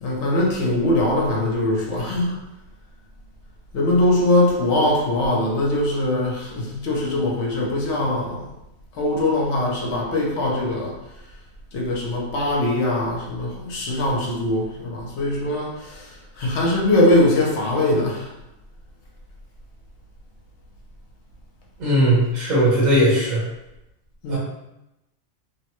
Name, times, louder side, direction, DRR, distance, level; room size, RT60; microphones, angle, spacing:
voice 1, 0.0-2.4 3.7-8.5 8.9-11.0 11.7-18.3 24.2-24.4, left 1 dB, 60° left, -2 dB, 0.9 m, -21 dB
voice 2, 21.8-23.4 24.3-24.4, right 1 dB, 35° right, -6 dB, 1.0 m, -18 dB
3.1 x 2.2 x 2.9 m, 0.90 s
omnidirectional pair, 1.4 m